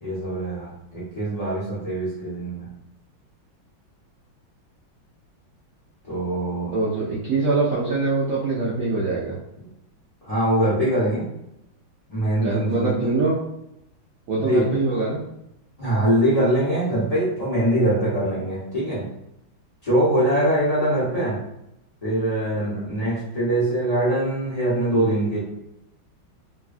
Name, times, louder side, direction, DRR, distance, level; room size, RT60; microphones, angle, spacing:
voice 1, 0.0-2.7 6.0-6.7 7.0-7.1 10.2-11.3 12.1-13.1 14.3-14.7 15.8-19.1 19.8-21.4 22.0-25.4, right 1 dB, 35° left, -9 dB, 0.6 m, -23 dB
voice 2, 6.7-9.3 12.4-13.4 14.3-15.2 22.5-22.8 24.9-25.1, right 3 dB, 75° right, -7 dB, 0.8 m, -24 dB
3.4 x 2.2 x 2.4 m, 0.83 s
omnidirectional pair, 2.2 m